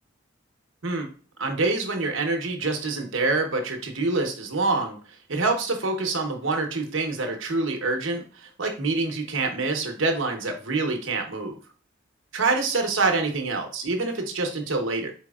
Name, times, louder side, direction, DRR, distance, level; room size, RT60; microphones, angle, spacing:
voice 1, 1.4-5.0 5.3-11.6 12.3-15.1, right 3 dB, 80° right, 4 dB, 0.9 m, -26 dB
4.5 x 4.1 x 2.3 m, 0.41 s
head